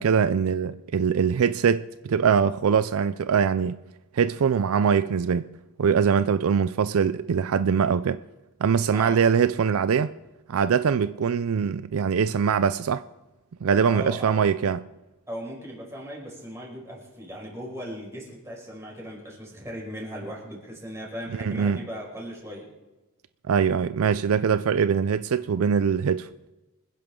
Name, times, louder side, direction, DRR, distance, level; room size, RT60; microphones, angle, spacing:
voice 1, 0.0-3.8 4.1-5.5 5.8-8.2 8.6-10.1 10.5-13.0 13.6-14.8 21.3-21.8 23.5-26.3, right 6 dB, 65° right, 0.4 m, -22 dB
voice 2, 8.9-9.2 13.9-14.5 15.3-22.7, equal, 15° right, 5.4 m, -38 dB
26.0 x 10.5 x 3.7 m
head